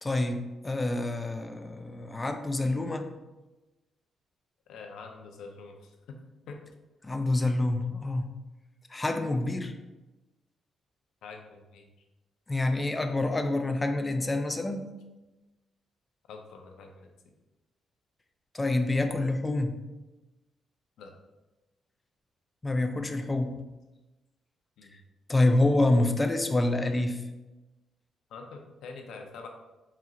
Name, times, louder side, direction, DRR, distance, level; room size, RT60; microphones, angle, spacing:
voice 1, 0.0-3.1 7.0-8.3 8.9-9.8 12.5-14.8 18.5-19.8 22.6-23.6 25.3-27.2, left 2 dB, 15° left, 7 dB, 0.3 m, -27 dB
voice 2, 4.7-6.2 6.5-6.6 11.2-11.9 16.3-17.1 21.0-21.1 24.8-25.0 28.3-29.5, left 4 dB, 85° left, 3 dB, 0.6 m, -45 dB
4.3 x 2.4 x 3.7 m, 1.1 s
cardioid pair, 160°, 0 cm